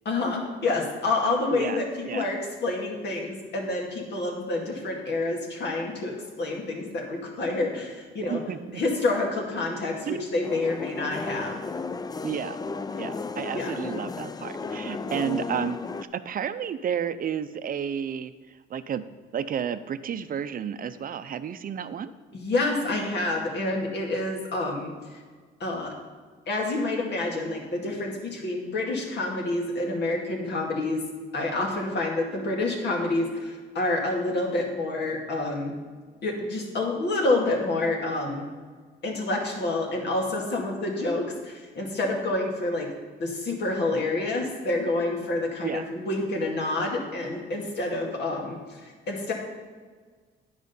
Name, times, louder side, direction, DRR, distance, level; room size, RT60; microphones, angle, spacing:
voice 1, 0.1-8.4 8.7-11.6 13.5-13.7 15.0-15.3 22.3-24.9 25.6-25.9 26.5-31.0 31.3-35.7 36.2-38.5 39.0-42.9 43.2-49.3, left 2 dB, 60° left, 0 dB, 2.1 m, -28 dB
voice 2, 8.3-8.8 10.1-10.2 12.2-12.6 13.0-15.8 16.1-19.1 19.3-22.1 45.6-45.8, right 8 dB, 45° right, 12 dB, 0.5 m, -31 dB
sound 1, 10.4-16.0, left 4 dB, 20° left, 0.4 m, -34 dB
10.0 x 5.1 x 5.4 m, 1.5 s
cardioid pair, 90°, 20 cm